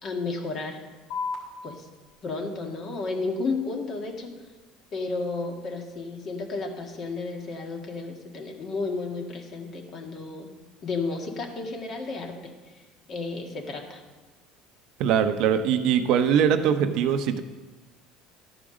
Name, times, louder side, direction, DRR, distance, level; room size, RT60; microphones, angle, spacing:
voice 1, 0.0-0.8 1.6-1.9 2.2-4.3 4.9-10.5 10.8-12.5 13.1-14.0, left 3 dB, 45° left, 2 dB, 1.7 m, -32 dB
sound 1, 1.1-8.1, left 4 dB, 70° left, 2.3 m, -42 dB
voice 2, 15.0-17.4, right 8 dB, 65° right, 8 dB, 0.7 m, -22 dB
12.0 x 5.0 x 6.2 m, 1.2 s
supercardioid pair, 110°, 0 cm